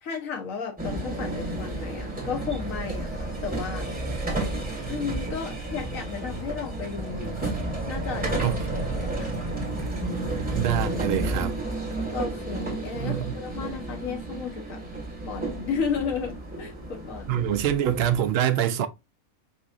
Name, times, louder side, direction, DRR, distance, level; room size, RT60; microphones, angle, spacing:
voice 1, 0.0-3.9 4.9-7.5 7.9-8.6 8.8-9.4 12.1-14.8 15.2-17.4, left 6 dB, 75° left, 1.5 m, -34 dB
sound 1, 0.8-18.3, right 2 dB, 5° right, 1.6 m, -31 dB
voice 2, 10.5-11.5 12.9-13.3 17.3-18.9, right 10 dB, 65° right, 0.6 m, -25 dB
5.3 x 3.1 x 2.5 m
omnidirectional pair, 1.4 m